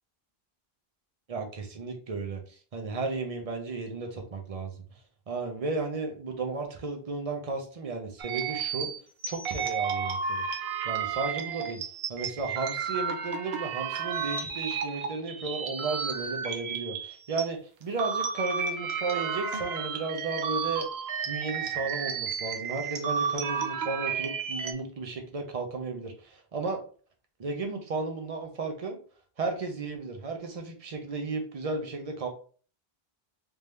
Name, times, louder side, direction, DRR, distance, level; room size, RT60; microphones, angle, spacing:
voice 1, 1.3-4.7 5.3-8.9 9.3-10.4 10.8-11.8 12.1-20.9 21.3-26.8 27.4-29.0 29.4-32.3, right 3 dB, 40° right, 4 dB, 0.8 m, -34 dB
sound 1, 8.2-17.4 17.8-24.7, right 6 dB, 85° right, 0.9 m, -32 dB
3.5 x 2.8 x 3.3 m, 0.42 s
omnidirectional pair, 1.0 m